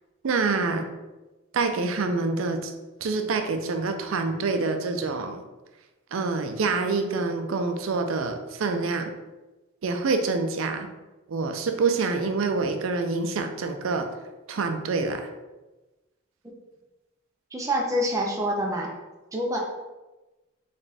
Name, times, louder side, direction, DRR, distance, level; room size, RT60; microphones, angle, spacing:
voice 1, 0.2-0.9 1.5-2.7 3.0-5.4 6.1-9.1 9.8-10.9 11.3-14.1 14.5-15.3, right 4 dB, 80° right, 6 dB, 0.5 m, -26 dB
voice 2, 17.5-18.9 19.3-19.6, equal, 15° right, -1 dB, 0.6 m, -26 dB
4.0 x 3.6 x 3.3 m, 1.1 s
head